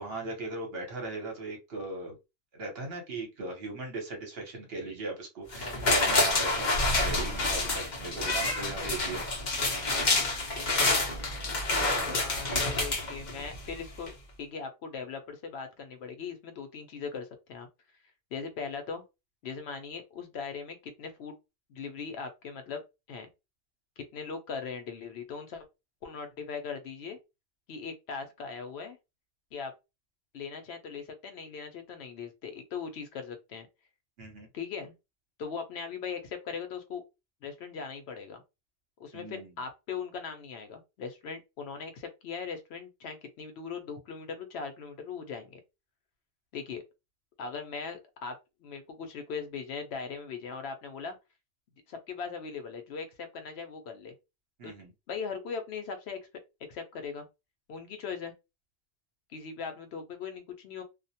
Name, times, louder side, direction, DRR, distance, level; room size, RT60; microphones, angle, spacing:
voice 1, 0.0-2.2 2.5-9.3 34.2-34.5 39.1-39.5 54.6-54.9, right 3 dB, 65° right, 1.0 m, -38 dB
sound 1, 5.5-13.7 14.1-14.2, left 2 dB, 45° left, 0.8 m, -28 dB
voice 2, 12.0-14.1 14.4-17.7 18.3-19.0 19.4-21.4 21.7-22.8 23.1-23.3 24.0-25.7 26.0-27.2 27.7-29.0 29.5-29.7 30.3-33.7 34.5-34.9 35.4-37.0 37.4-38.4 39.0-45.6 46.5-46.8 47.4-51.2 51.9-54.1 54.6-54.7 55.1-56.2 56.7-57.2 57.7-58.3 59.3-60.8, left 5 dB, 75° left, 0.9 m, -39 dB
2.4 x 2.0 x 2.7 m
omnidirectional pair, 1.1 m